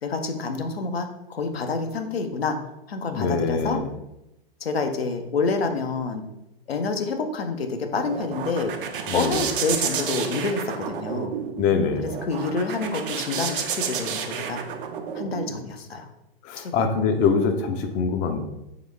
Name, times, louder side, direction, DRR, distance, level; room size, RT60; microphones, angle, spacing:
voice 1, 0.0-2.6 2.9-3.8 4.6-6.2 6.7-8.8 9.1-11.3 12.0-14.6 15.2-16.1 16.6-16.9 17.7-17.8, left 4 dB, 85° left, 6 dB, 0.6 m, -28 dB
voice 2, 3.1-3.9 9.1-9.5 11.6-12.1 16.4-18.4, left 5 dB, 25° left, 6 dB, 0.4 m, -24 dB
sound 1, 7.6-15.5, right 7 dB, 60° right, 0.6 m, -31 dB
3.9 x 3.0 x 3.2 m, 0.88 s
hypercardioid pair, 110°, 30 cm